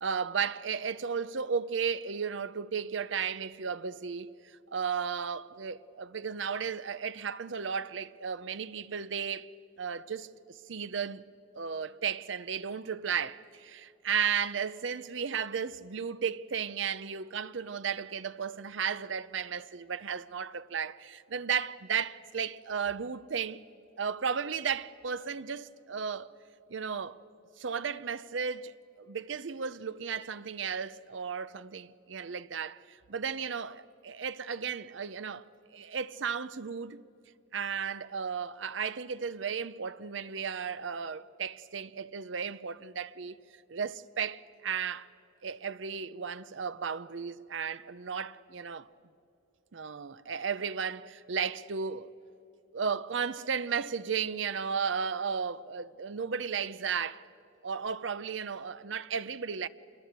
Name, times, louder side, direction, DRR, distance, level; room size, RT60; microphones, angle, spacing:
voice 1, 0.0-9.5 9.8-23.6 24.0-26.3 26.7-27.2 27.6-35.4 35.7-37.0 37.5-43.4 43.7-45.1 45.4-48.9 49.7-52.1 52.7-57.3 57.6-59.7, right 6 dB, 75° right, 0.7 m, -34 dB
26.5 x 22.0 x 8.2 m
head